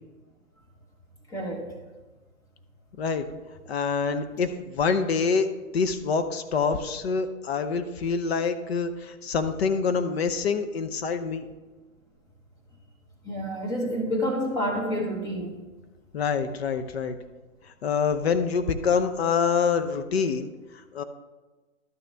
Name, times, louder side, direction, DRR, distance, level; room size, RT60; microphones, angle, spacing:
voice 1, 1.3-1.7 4.4-4.5 13.2-15.6, equal, 10° left, 1 dB, 0.9 m, -29 dB
voice 2, 3.7-5.5 5.7-11.5 16.1-17.2 17.8-20.5 20.9-21.0, left 5 dB, 50° left, 9 dB, 0.7 m, -26 dB
12.0 x 6.6 x 3.4 m, 1.2 s
hypercardioid pair, 140°, 42 cm